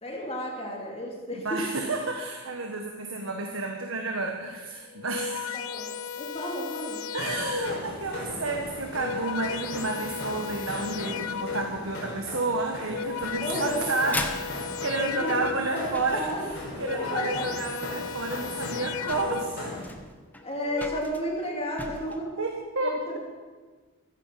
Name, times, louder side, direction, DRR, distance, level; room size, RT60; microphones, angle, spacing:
voice 1, 0.0-1.7 5.5-7.1 13.4-13.9 15.0-15.4 15.7-16.5 16.7-17.5 20.4-22.4 22.8-23.2, equal, 30° left, -1 dB, 2.8 m, -33 dB
voice 2, 1.4-5.6 7.1-14.2 14.8-16.2 16.8-19.6 22.4-23.2, right 3 dB, 65° right, 2 dB, 1.5 m, -31 dB
sound 1, 4.8-8.0 8.8-11.9 12.7-15.8 16.6-19.7 20.5-21.0, left 7 dB, 75° left, 0.5 m, -36 dB
sound 2, 7.2-19.9, left 1 dB, 50° left, 5.3 m, -38 dB
sound 3, 13.2-16.8 18.2-18.3 18.8-18.9 19.1-22.2, left 2 dB, 10° left, 1.1 m, -39 dB
15.0 x 14.5 x 5.8 m, 1.4 s
head